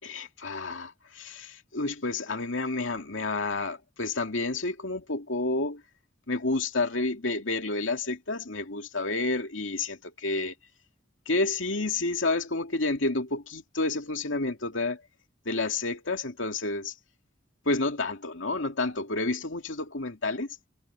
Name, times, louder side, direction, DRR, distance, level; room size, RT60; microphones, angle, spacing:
voice 1, 0.0-5.8 6.3-10.5 11.3-15.0 15.5-16.9 17.7-20.5, left 2 dB, 85° left, 2.4 m, -30 dB
head